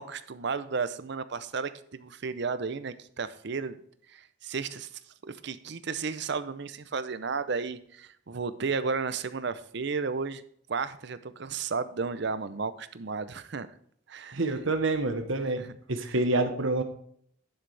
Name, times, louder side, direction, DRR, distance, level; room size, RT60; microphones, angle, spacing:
voice 1, 0.0-3.8 4.1-10.4 10.7-13.7 14.1-14.4 15.4-15.7 16.0-16.2, right 5 dB, 55° right, 13 dB, 0.6 m, -33 dB
voice 2, 14.3-15.6 15.9-16.8, right 2 dB, 70° right, 7 dB, 1.1 m, -27 dB
11.0 x 6.5 x 3.3 m, 0.65 s
head